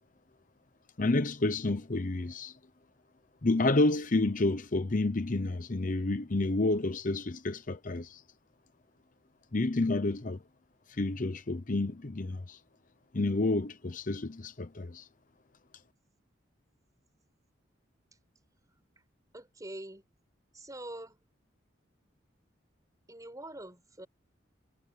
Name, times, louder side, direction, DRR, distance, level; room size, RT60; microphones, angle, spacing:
voice 1, 1.0-2.5 3.4-8.2 9.5-10.4 10.9-12.6 13.1-15.1, left 2 dB, 45° left, 0.9 m, -29 dB
voice 2, 19.3-20.0 20.5-21.2 23.1-24.1, right 1 dB, 20° right, 5.9 m, -44 dB
head